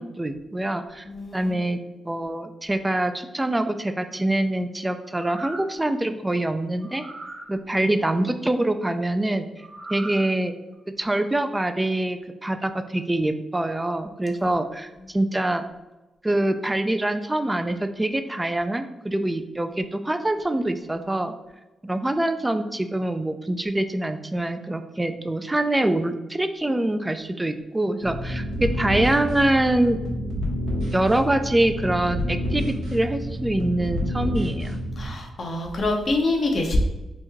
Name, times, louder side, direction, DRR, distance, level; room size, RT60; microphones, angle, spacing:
voice 1, 0.0-1.0 1.3-1.8 2.0-7.0 7.5-9.5 9.9-10.5 11.0-15.6 16.2-21.3 21.8-30.0 30.9-34.8, right 1 dB, 15° right, 9 dB, 0.3 m, -24 dB
voice 2, 1.1-1.6 35.0-36.8, left 2 dB, 55° left, 2 dB, 0.6 m, -25 dB
sound 1, 5.0-5.8 6.8-7.5 9.6-10.3 10.7-10.8, right 2 dB, 50° right, 1.1 m, -39 dB
sound 2, 28.0-35.1, equal, 85° right, 0.8 m, -28 dB
3.0 x 2.6 x 3.5 m, 1.0 s
supercardioid pair, 55°, 0 cm